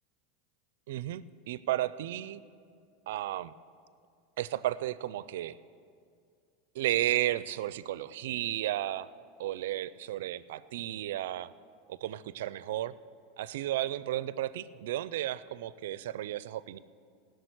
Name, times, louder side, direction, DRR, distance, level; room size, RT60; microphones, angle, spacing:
voice 1, 0.9-2.4 3.1-3.5 4.4-5.6 6.7-9.1 9.4-11.5 11.9-12.9 13.4-16.8, right 13 dB, 80° right, 17 dB, 0.4 m, -33 dB
16.5 x 6.5 x 8.0 m, 2.3 s
supercardioid pair, 120°, 0 cm